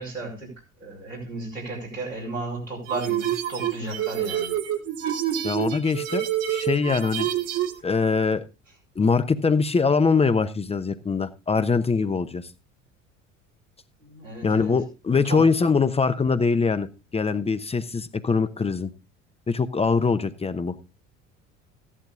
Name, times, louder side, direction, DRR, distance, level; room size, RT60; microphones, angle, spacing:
voice 1, 0.0-4.5 14.0-14.7 15.2-15.5, right 2 dB, 90° right, 4.9 m, -34 dB
sound 1, 2.9-7.8, right 11 dB, 55° right, 2.3 m, -27 dB
voice 2, 5.4-7.3 7.8-8.4 9.0-12.5 14.4-18.9 19.5-20.8, left 4 dB, 15° left, 0.9 m, -23 dB
16.0 x 11.0 x 2.4 m
figure-of-eight pair, 60°, 38 cm